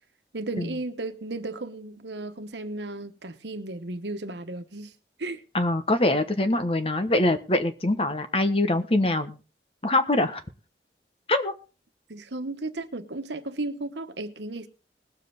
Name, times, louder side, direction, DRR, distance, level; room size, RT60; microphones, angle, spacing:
voice 1, 0.3-4.9 5.2-5.4 12.1-14.7, right 2 dB, 80° right, 1.2 m, -34 dB
voice 2, 5.5-9.4 9.8-10.4 11.3-11.5, left 1 dB, 30° left, 1.1 m, -23 dB
20.5 x 7.5 x 4.0 m
head